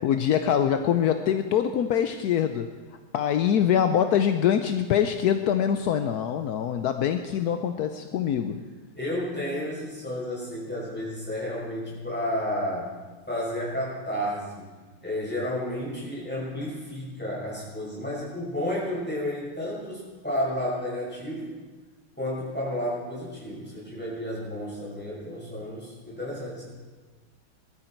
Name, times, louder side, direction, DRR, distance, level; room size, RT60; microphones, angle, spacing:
voice 1, 0.0-2.7 3.1-8.6, left 9 dB, 70° left, 7 dB, 0.9 m, -24 dB
voice 2, 8.9-12.9 13.3-14.7 15.0-21.6 22.2-26.6, left 1 dB, 5° left, -6 dB, 6.5 m, -31 dB
20.5 x 13.0 x 4.5 m, 1.4 s
omnidirectional pair, 2.3 m